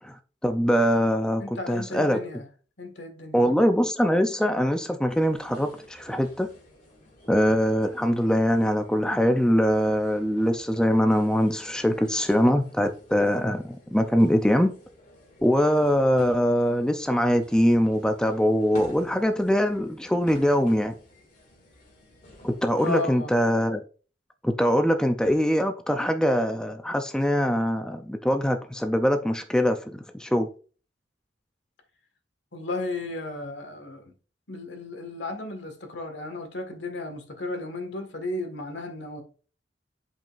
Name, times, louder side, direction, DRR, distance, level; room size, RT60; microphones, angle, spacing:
voice 1, 0.0-2.2 3.3-6.5 7.3-14.7 15.4-20.9 22.4-23.8 24.4-30.5, equal, 5° left, 0.5 m, -23 dB
voice 2, 1.4-2.4 2.8-3.6 22.8-23.4 32.5-34.1 34.5-39.2, left 2 dB, 75° left, 1.7 m, -34 dB
sound 1, 5.1-23.0, left 1 dB, 45° left, 2.5 m, -50 dB
10.5 x 5.4 x 2.5 m
head